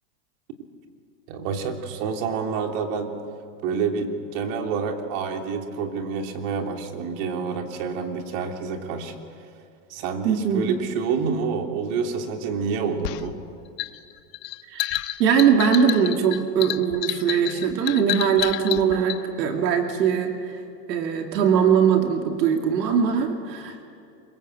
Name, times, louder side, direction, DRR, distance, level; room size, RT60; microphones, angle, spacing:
voice 1, 1.3-3.1 3.6-9.1 9.9-13.3, right 5 dB, 50° right, 4 dB, 3.2 m, -28 dB
voice 2, 10.2-10.7 14.7-14.9 15.2-20.6 20.9-23.8, right 7 dB, 75° right, 4 dB, 2.6 m, -21 dB
sound 1, 13.0-19.2, left 15 dB, 75° left, 1.2 m, -29 dB
25.0 x 22.5 x 7.8 m, 2.4 s
supercardioid pair, 135°, 50 cm